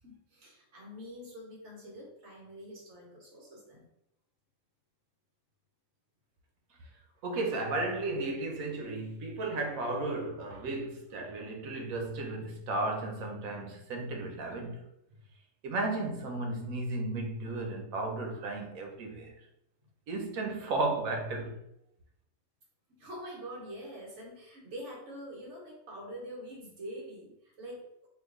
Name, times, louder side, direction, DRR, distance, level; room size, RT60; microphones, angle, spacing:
voice 1, 0.0-3.9 15.1-15.2 22.9-28.1, equal, 60° right, 1.3 m, -45 dB
voice 2, 7.2-14.8 15.6-19.3 20.1-21.5, right 2 dB, 85° right, 1.1 m, -34 dB
2.9 x 2.4 x 3.5 m
omnidirectional pair, 1.4 m